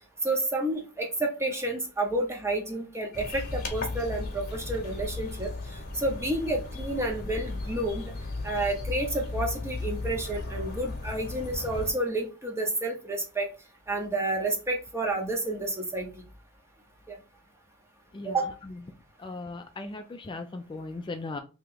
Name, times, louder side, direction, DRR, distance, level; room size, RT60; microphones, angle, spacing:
voice 1, 0.2-5.5 6.0-8.1 8.4-13.5 13.9-16.1 17.1-17.2 18.2-18.5, right 2 dB, 10° right, 2 dB, 0.8 m, -30 dB
sound 1, 3.1-11.9, left 2 dB, 45° left, 1.0 m, -36 dB
voice 2, 19.2-21.4, left 3 dB, 20° left, 6 dB, 0.3 m, -37 dB
3.0 x 2.8 x 3.7 m, 0.32 s
head